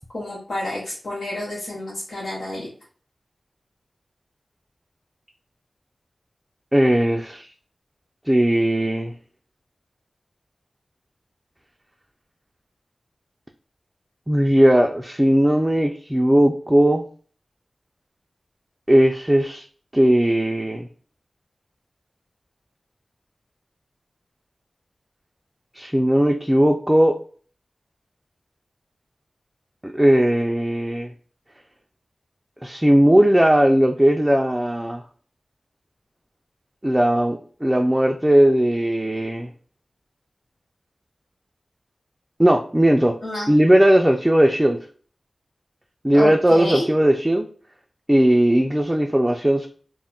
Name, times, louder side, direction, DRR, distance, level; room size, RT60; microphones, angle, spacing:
voice 1, 0.1-2.7 43.2-43.5 46.1-46.9, left 1 dB, 85° left, -7 dB, 0.8 m, -29 dB
voice 2, 6.7-7.5 8.3-9.1 14.3-17.1 18.9-19.6 19.9-20.9 25.7-27.2 29.8-31.1 32.6-35.0 36.8-39.5 42.4-43.2 43.5-44.8 46.0-47.5 48.1-49.7, right 1 dB, 15° right, 2 dB, 0.3 m, -18 dB
2.2 x 2.0 x 3.7 m, 0.43 s
cardioid pair, 40°, 0 cm